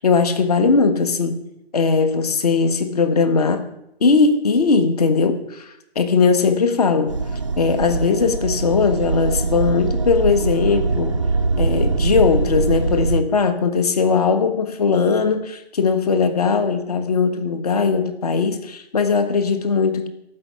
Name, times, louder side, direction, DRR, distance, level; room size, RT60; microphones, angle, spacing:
voice 1, 0.0-1.4 1.7-3.6 4.0-5.7 5.9-7.1 7.6-11.1 11.6-20.1, left 5 dB, 35° left, 8 dB, 1.6 m, -19 dB
sound 1, 7.1-13.2, right 4 dB, 30° right, 0.6 m, -22 dB
15.0 x 5.9 x 10.0 m, 0.80 s
figure-of-eight pair, 160°, 32 cm